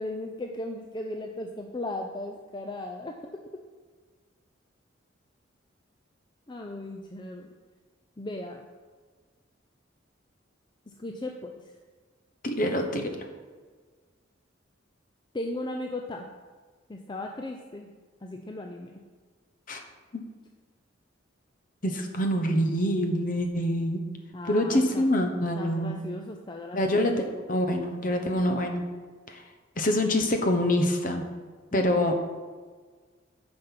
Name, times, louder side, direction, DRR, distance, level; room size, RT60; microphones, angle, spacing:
voice 1, 0.0-3.4 6.5-7.5 8.2-8.6 11.0-11.5 15.3-16.3 16.9-17.9 18.2-19.0 24.3-25.0 25.6-27.1 31.7-32.0, left 1 dB, 25° left, 2 dB, 0.5 m, -36 dB
voice 2, 12.4-13.1 19.7-19.8 20.1-20.2 21.8-24.0 24.5-26.0 26.7-28.8 29.3-29.4 29.8-31.2 31.7-32.2, left 1 dB, 45° left, 5 dB, 1.1 m, -25 dB
9.3 x 5.2 x 5.9 m, 1.5 s
head